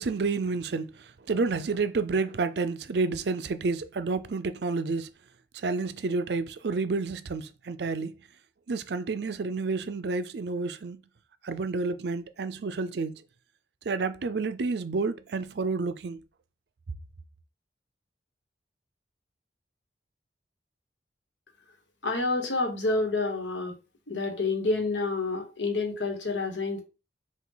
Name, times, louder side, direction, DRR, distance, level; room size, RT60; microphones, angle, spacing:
voice 1, 0.0-5.1 5.5-8.1 8.7-11.0 11.4-13.2 13.8-16.2, right 4 dB, 65° right, 0.4 m, -30 dB
voice 2, 22.0-23.7 24.1-26.8, left 3 dB, 85° left, 1.3 m, -28 dB
5.7 x 2.4 x 3.8 m
head